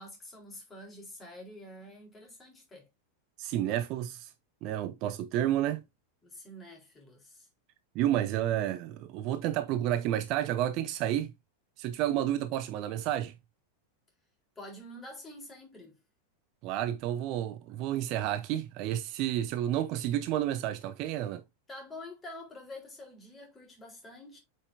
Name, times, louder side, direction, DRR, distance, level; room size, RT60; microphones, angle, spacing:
voice 1, 0.0-2.9 6.2-7.5 14.6-16.0 21.7-24.4, left 1 dB, 15° left, 3.8 m, -47 dB
voice 2, 3.4-4.3 4.6-5.8 7.9-11.3 11.8-13.3 16.6-21.4, right 12 dB, 40° right, 0.8 m, -30 dB
8.2 x 5.6 x 2.7 m
figure-of-eight pair, 90°, 0 cm